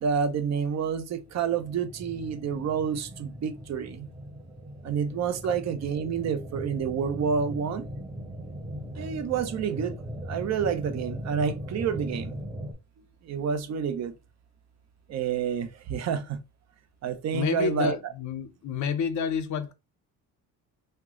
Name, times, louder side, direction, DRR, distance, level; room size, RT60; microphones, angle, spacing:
voice 1, 0.0-4.1 4.8-7.8 9.0-9.9 10.3-12.4 13.3-14.1 15.1-16.4 17.0-18.0, right 7 dB, 45° right, 0.6 m, -29 dB
sound 1, 1.2-12.7, equal, 5° right, 0.7 m, -39 dB
voice 2, 17.3-19.7, left 6 dB, 50° left, 0.6 m, -29 dB
3.0 x 2.1 x 3.6 m
cardioid pair, 115°, 38 cm